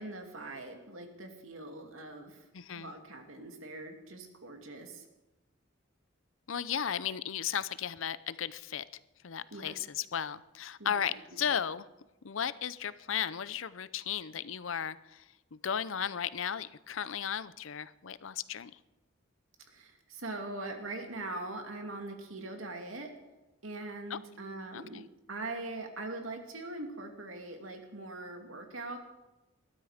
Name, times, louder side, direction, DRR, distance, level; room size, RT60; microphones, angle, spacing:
voice 1, 0.0-2.4 2.7-5.1 9.5-9.7 10.8-11.6 19.7-23.1 23.6-25.0 25.3-29.0, right 2 dB, 85° right, 4 dB, 2.5 m, -42 dB
voice 2, 2.5-2.9 6.5-8.8 9.2-11.9 12.2-15.2 15.5-18.7 24.1-24.2 24.7-25.0, left 8 dB, 80° left, 16 dB, 0.6 m, -35 dB
20.5 x 13.0 x 5.0 m, 1.0 s
head